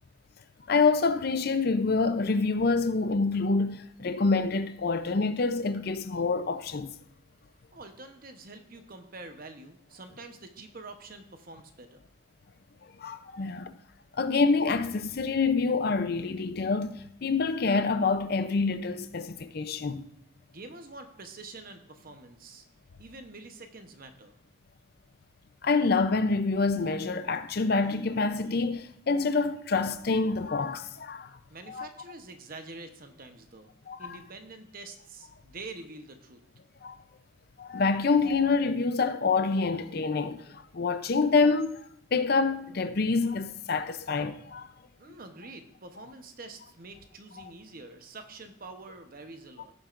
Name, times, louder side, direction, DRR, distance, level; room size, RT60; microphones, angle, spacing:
voice 1, 0.7-6.9 13.0-13.7 14.1-20.1 25.6-31.3 31.7-31.9 33.9-34.2 36.8-37.0 37.6-44.7, left 4 dB, 50° left, 0.5 m, -27 dB
voice 2, 7.7-12.0 20.5-22.7 23.0-24.4 31.5-33.7 34.0-36.4 45.0-49.7, right 3 dB, 45° right, 0.9 m, -46 dB
15.0 x 7.4 x 2.5 m
head